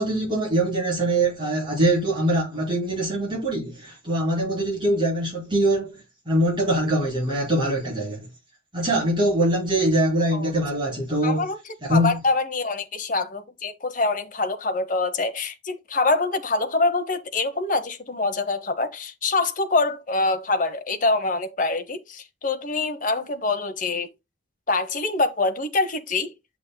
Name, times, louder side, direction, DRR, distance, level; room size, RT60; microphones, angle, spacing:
voice 1, 0.0-8.3 8.7-11.4 11.8-12.2, right 1 dB, 25° right, 5.1 m, -23 dB
voice 2, 11.2-24.1 24.7-26.3, left 3 dB, 40° left, 1.0 m, -25 dB
9.2 x 6.2 x 2.3 m
head